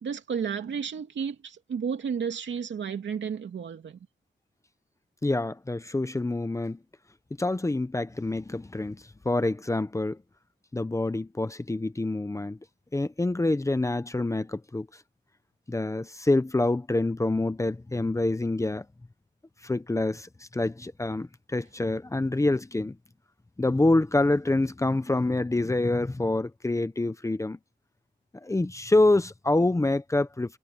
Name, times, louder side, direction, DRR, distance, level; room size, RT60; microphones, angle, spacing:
voice 1, 0.0-4.0, right 7 dB, 85° right, 2.7 m, -32 dB
voice 2, 5.2-6.8 7.4-10.2 10.7-12.6 12.9-14.9 15.7-18.9 19.6-23.0 23.6-27.6 28.4-30.6, left 2 dB, 15° left, 0.8 m, -26 dB
wide cardioid pair, 130°, 18 cm